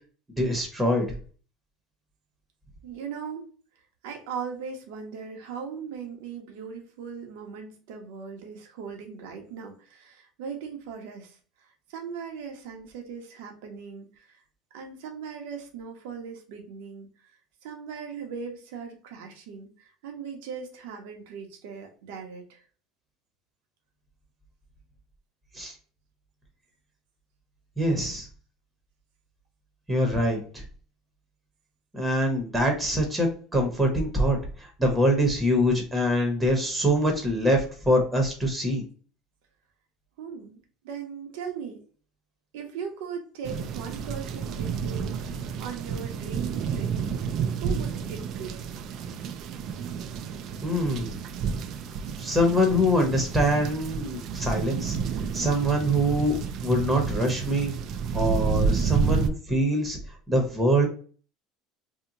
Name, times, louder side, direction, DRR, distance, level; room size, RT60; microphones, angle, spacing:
voice 1, 0.3-1.1 25.5-25.7 27.8-28.3 29.9-30.6 31.9-38.8 50.6-51.2 52.2-55.0 55.3-56.4 56.6-57.7 58.1-60.9, equal, 10° right, 2 dB, 0.9 m, -24 dB
voice 2, 2.8-3.5 4.0-14.4 14.7-17.4 17.6-22.6 40.2-41.8 42.5-46.9 47.6-48.6, right 6 dB, 85° right, 3 dB, 0.8 m, -39 dB
sound 1, 43.4-59.3, right 5 dB, 50° right, 0.3 m, -30 dB
2.8 x 2.2 x 3.7 m, 0.41 s
cardioid pair, 135°, 0 cm